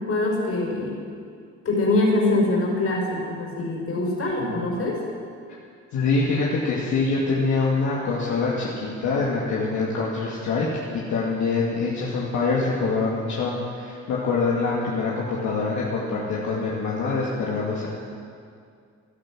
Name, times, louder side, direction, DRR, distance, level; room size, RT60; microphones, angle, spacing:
voice 1, 0.1-0.9 1.7-5.0, left 2 dB, 50° left, -1 dB, 5.2 m, -23 dB
voice 2, 5.9-10.7 10.9-17.9, left 4 dB, 75° left, -5 dB, 2.5 m, -25 dB
16.0 x 12.0 x 6.4 m, 2.2 s
cardioid pair, 90°, 30 cm